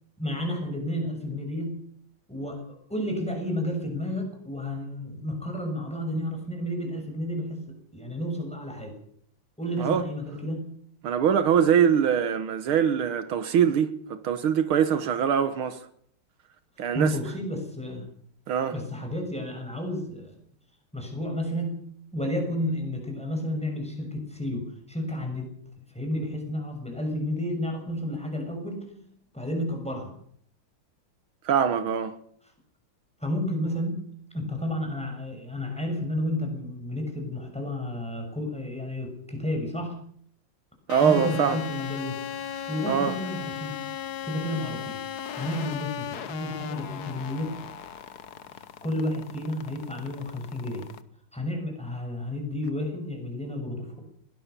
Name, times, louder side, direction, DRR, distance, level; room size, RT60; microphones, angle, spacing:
voice 1, 0.2-1.8 2.3-2.6 2.9-7.6 7.9-8.9 9.6-10.7 16.8-18.1 18.7-20.4 20.9-21.8 22.1-25.5 25.9-29.0 29.3-30.1 33.2-34.0 34.3-40.0 41.0-42.2 42.7-43.8 44.2-45.0 45.3-47.6 48.5-50.9 51.3-54.0, left 1 dB, 5° left, 6.5 m, -31 dB
voice 2, 11.0-15.8 16.8-17.2 18.5-18.8 31.5-32.2 40.9-41.6 42.9-43.1, right 8 dB, 80° right, 2.0 m, -23 dB
sound 1, 40.9-51.0, left 9 dB, 55° left, 1.4 m, -37 dB
21.5 x 17.5 x 6.9 m
omnidirectional pair, 2.3 m